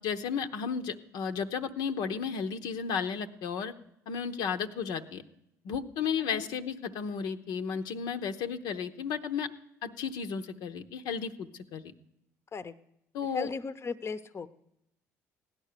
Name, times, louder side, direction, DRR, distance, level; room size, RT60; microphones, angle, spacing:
voice 1, 0.0-3.7 4.1-5.2 5.6-9.5 9.8-11.9 13.1-13.5, left 6 dB, 70° left, 6 dB, 0.8 m, -33 dB
voice 2, 13.3-14.5, left 4 dB, 35° left, 13 dB, 0.8 m, -37 dB
16.0 x 10.5 x 6.7 m, 0.83 s
hypercardioid pair, 60°, 8 cm